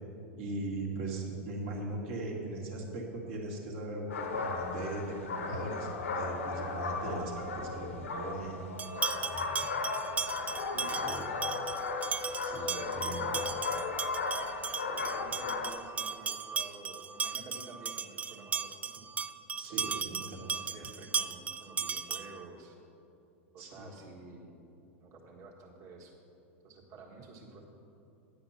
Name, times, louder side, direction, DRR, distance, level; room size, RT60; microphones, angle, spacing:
voice 1, 0.4-8.6 10.8-11.2 12.4-13.3 19.6-20.6 23.6-23.9, right 2 dB, 65° right, -1 dB, 2.0 m, -39 dB
sound 1, 4.1-15.7, left 4 dB, 85° left, 0.8 m, -36 dB
sound 2, 8.8-22.5, right 6 dB, 20° right, 0.3 m, -37 dB
sound 3, 9.1-14.6 15.0-15.1 15.3-15.5 16.2-16.3 16.7-17.0, left 3 dB, 20° left, 0.7 m, -44 dB
voice 2, 10.7-11.2 12.7-13.5 14.9-19.0 19.7-20.1 20.4-22.8 23.5-24.5 25.0-26.1 26.6-27.6, right 3 dB, 45° right, -1 dB, 1.6 m, -50 dB
10.0 x 7.9 x 5.6 m, 2.7 s
hypercardioid pair, 95°, 7 cm